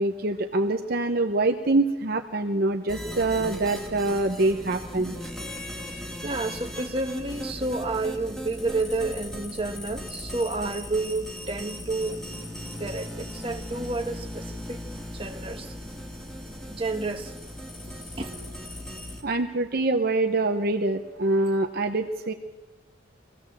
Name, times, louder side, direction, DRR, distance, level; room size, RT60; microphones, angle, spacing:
voice 1, 0.0-5.2 19.2-22.3, right 2 dB, 50° right, 0.9 m, -25 dB
sound 1, 2.9-19.2, left 1 dB, 5° left, 2.2 m, -38 dB
voice 2, 6.1-14.8 15.1-15.7 16.7-17.3 17.9-18.4, right 2 dB, 30° right, 1.4 m, -30 dB
23.0 x 16.0 x 7.5 m
head